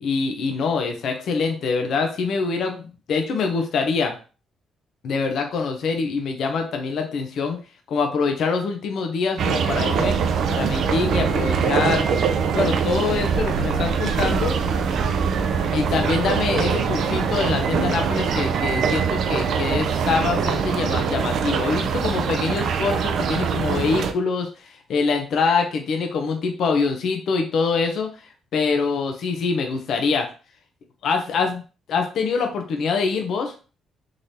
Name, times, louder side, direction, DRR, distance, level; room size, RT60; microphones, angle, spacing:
voice 1, 0.0-4.1 5.0-7.6 7.9-10.2 10.5-12.1 12.5-14.6 15.7-28.1 28.5-30.3 31.0-31.6 31.9-33.5, left 4 dB, 70° left, 4 dB, 0.7 m, -24 dB
sound 1, 9.4-24.1, right 6 dB, 70° right, 0.5 m, -23 dB
3.8 x 3.3 x 2.7 m, 0.36 s
cardioid pair, 90°, 0 cm